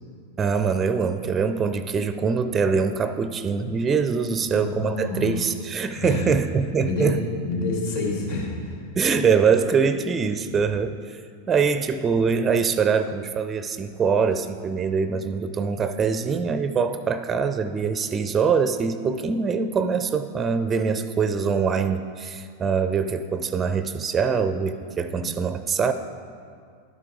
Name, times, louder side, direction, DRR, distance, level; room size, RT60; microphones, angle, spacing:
voice 1, 0.4-7.2 9.0-11.2 11.5-25.9, right 5 dB, 20° right, 11 dB, 0.4 m, -23 dB
voice 2, 4.3-5.3 5.9-6.3 6.8-8.8 25.0-25.3, left 3 dB, 60° left, -2 dB, 2.7 m, -29 dB
11.5 x 9.0 x 3.8 m, 2.2 s
figure-of-eight pair, 90°, 0 cm